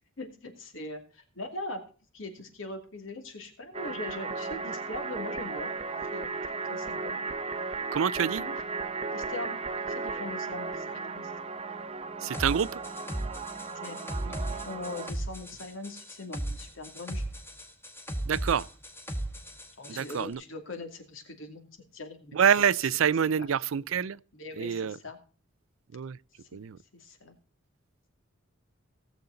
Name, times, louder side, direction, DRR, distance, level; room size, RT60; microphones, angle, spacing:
voice 1, 0.2-1.8 2.1-5.7 6.1-6.3 6.7-7.2 8.4-8.5 9.1-11.3 13.7-17.2 19.8-21.7 21.9-22.7 23.7-23.8 24.3-25.2 26.9-27.4, left 2 dB, 70° left, 2.4 m, -41 dB
sound 1, 3.7-15.1, right 4 dB, 30° right, 0.7 m, -35 dB
voice 2, 7.9-8.4 12.2-12.8 18.3-18.7 19.9-20.4 22.3-24.2 24.6-25.0 25.9-26.2 26.5-26.8, right 7 dB, 75° right, 0.4 m, -26 dB
sound 2, 12.3-20.2, right 1 dB, 10° left, 1.7 m, -36 dB
18.0 x 7.2 x 3.9 m
head